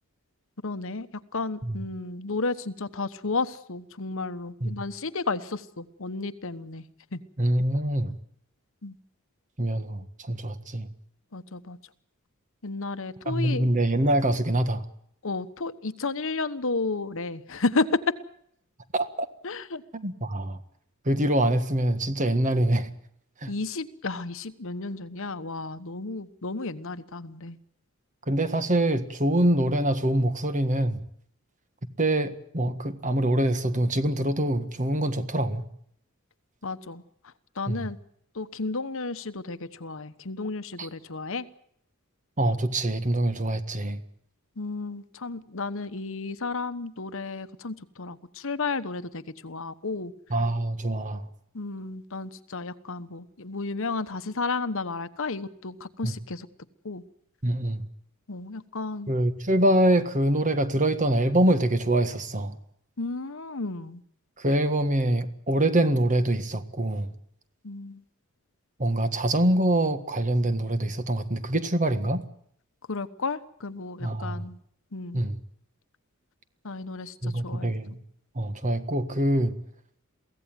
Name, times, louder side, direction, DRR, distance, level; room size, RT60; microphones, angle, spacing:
voice 1, 0.6-1.1 1.3-6.8 7.1-7.2 8.8-9.0 11.3-11.8 12.6-13.7 15.2-18.1 19.4-19.8 23.5-27.6 36.6-37.0 37.6-38.0 38.3-41.4 44.6-50.1 51.5-56.5 56.8-57.0 58.3-59.1 63.0-64.0 67.6-68.0 72.9-74.6 74.9-75.2 76.6-77.7, left 3 dB, 65° left, 1.1 m, -32 dB
voice 2, 7.4-8.1 9.6-10.9 13.2-14.8 18.9-19.3 19.9-20.6 21.0-22.9 23.4-23.5 28.3-31.0 32.0-35.6 37.7-37.9 40.8-40.9 42.4-44.0 50.3-51.3 56.0-56.1 57.4-57.8 59.1-62.6 64.4-67.1 68.8-72.2 74.0-74.4 75.1-75.4 77.2-78.0 78.3-79.5, right 1 dB, 35° right, 1.7 m, -25 dB
23.5 x 16.5 x 9.2 m
head